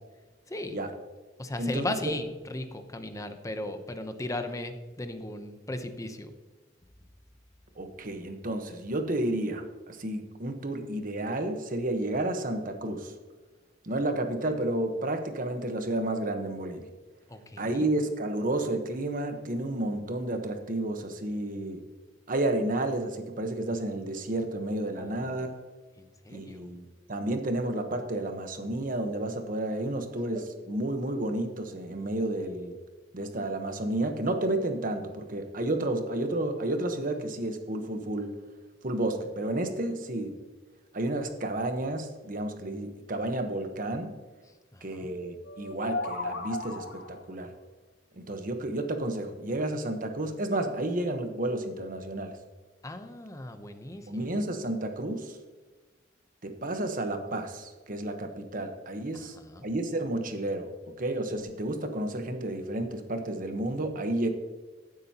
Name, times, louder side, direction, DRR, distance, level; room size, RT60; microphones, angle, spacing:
voice 1, 0.5-0.8 1.4-6.3 17.3-17.9 25.0-25.5 26.0-26.7 44.4-45.1 52.8-54.4 59.1-59.7, left 1 dB, 20° left, 8 dB, 0.8 m, -37 dB
voice 2, 7.8-13.1 13.8-16.9 17.6-21.8 22.3-25.6 26.3-32.8 33.1-38.3 38.8-40.3 40.9-44.1 44.8-47.5 48.2-52.3 54.1-55.4 56.4-59.3 59.6-64.3, right 1 dB, 50° right, 6 dB, 1.2 m, -31 dB
sound 1, 45.4-47.3, left 3 dB, 80° left, 1.4 m, -35 dB
15.0 x 8.0 x 2.9 m, 1.3 s
head